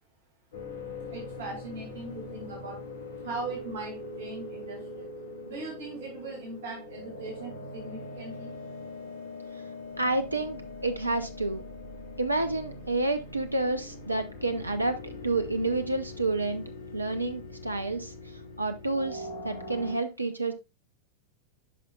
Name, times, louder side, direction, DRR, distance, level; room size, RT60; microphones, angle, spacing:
sound 1, 0.5-19.9, left 2 dB, 65° left, 1.8 m, -42 dB
voice 1, 1.1-2.8 3.2-5.0 5.5-8.5, right 3 dB, 60° right, 2.2 m, -39 dB
voice 2, 10.0-11.6 12.2-20.5, right 2 dB, 80° right, 0.6 m, -30 dB
9.3 x 5.5 x 2.3 m
figure-of-eight pair, 90°, 0 cm